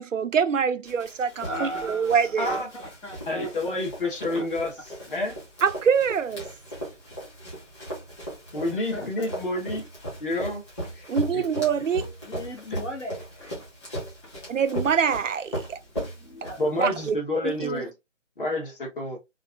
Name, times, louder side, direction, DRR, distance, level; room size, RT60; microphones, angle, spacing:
voice 1, 0.0-2.5 5.6-6.5 11.1-12.1 14.5-15.8 16.8-17.2 17.4-17.8, right 6 dB, 90° right, 0.5 m, -25 dB
Run, 0.8-17.0, right 1 dB, 25° left, 1.2 m, -37 dB
voice 2, 1.4-3.5 8.7-9.3 12.2-13.7 14.2-14.3 16.2-16.6, equal, 70° left, 1.7 m, -38 dB
voice 3, 2.4-2.7 3.3-5.3 8.5-9.9 10.2-10.6 10.9-11.4 12.7-12.8 16.6-17.9 18.4-19.2, left 1 dB, 45° left, 1.4 m, -29 dB
3.1 x 2.6 x 2.3 m
figure-of-eight pair, 155°, 37 cm